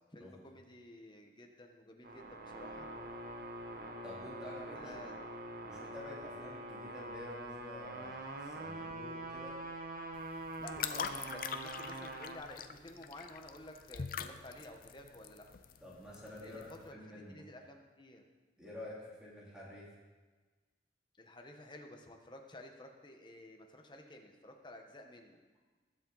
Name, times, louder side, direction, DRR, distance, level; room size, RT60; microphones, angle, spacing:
voice 1, 0.1-2.9 4.5-5.2 6.3-6.5 10.6-15.5 16.4-18.2 21.2-25.4, left 1 dB, 25° left, 3 dB, 1.2 m, -52 dB
sound 1, 2.0-12.4, right 2 dB, 55° right, 1.1 m, -44 dB
voice 2, 4.0-4.9 5.6-9.6 15.8-17.3 18.6-19.9, left 1 dB, 5° right, -7 dB, 3.1 m, -49 dB
sound 2, 10.1-16.9, left 7 dB, 50° left, 0.5 m, -43 dB
21.0 x 7.4 x 4.0 m, 1.3 s
head